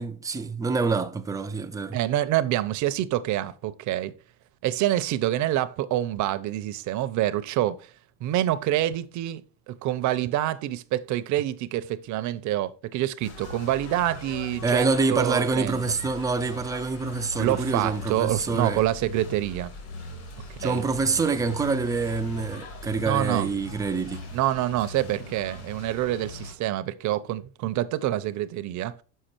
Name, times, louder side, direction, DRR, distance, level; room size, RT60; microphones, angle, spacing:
voice 1, 0.0-2.0 14.6-18.8 20.6-24.3, right 4 dB, 10° right, 0.3 m, -26 dB
voice 2, 1.9-4.1 4.6-7.9 8.2-15.8 17.4-19.7 20.5-20.8 23.0-23.5 24.3-29.0, right 13 dB, 45° right, 0.6 m, -27 dB
sound 1, 13.2-26.5, left 2 dB, 65° left, 2.7 m, -39 dB
6.6 x 4.7 x 4.4 m
supercardioid pair, 130°, 42 cm